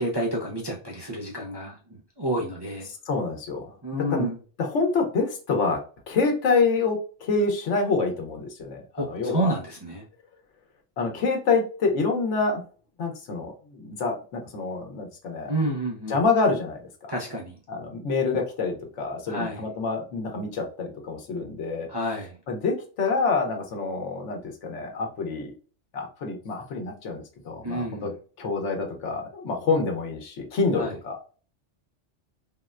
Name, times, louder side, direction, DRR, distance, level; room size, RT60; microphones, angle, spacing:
voice 1, 0.0-1.8 2.2-2.9 3.8-4.4 9.0-10.0 15.5-16.2 17.1-17.6 19.3-19.6 21.9-22.4 27.6-28.1 30.8-30.9, right 1 dB, 35° right, -3 dB, 0.4 m, -29 dB
voice 2, 3.1-3.7 4.1-4.3 4.6-5.8 6.1-9.6 11.0-12.6 13.0-15.5 16.1-17.1 17.7-21.9 22.5-25.5 25.9-28.1 28.4-31.2, left 4 dB, 90° left, 3 dB, 1.1 m, -27 dB
3.7 x 2.1 x 2.4 m, 0.38 s
omnidirectional pair, 1.2 m